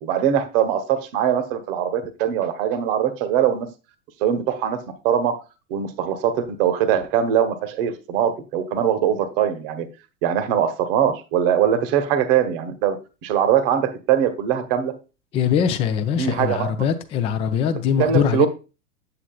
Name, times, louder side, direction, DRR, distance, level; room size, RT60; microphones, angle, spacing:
voice 1, 0.0-3.7 4.2-4.8 5.0-5.4 5.7-9.9 10.2-13.0 13.2-14.9 16.2-16.7 18.0-18.5, right 9 dB, 40° right, 1.1 m, -21 dB
voice 2, 15.3-18.5, left 8 dB, 15° left, 0.4 m, -22 dB
8.1 x 7.8 x 2.3 m
figure-of-eight pair, 95°, 41 cm